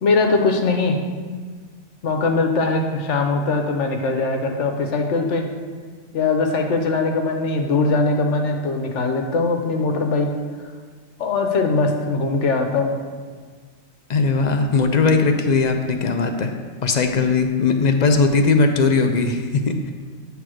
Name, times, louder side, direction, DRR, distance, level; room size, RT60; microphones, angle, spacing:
voice 1, 0.0-1.0 2.0-5.5 6.1-10.3 11.2-12.9, left 3 dB, 80° left, 4 dB, 1.1 m, -21 dB
voice 2, 14.1-16.5 16.8-19.9, left 4 dB, 55° left, 5 dB, 0.5 m, -19 dB
8.9 x 3.4 x 6.2 m, 1.5 s
omnidirectional pair, 1.2 m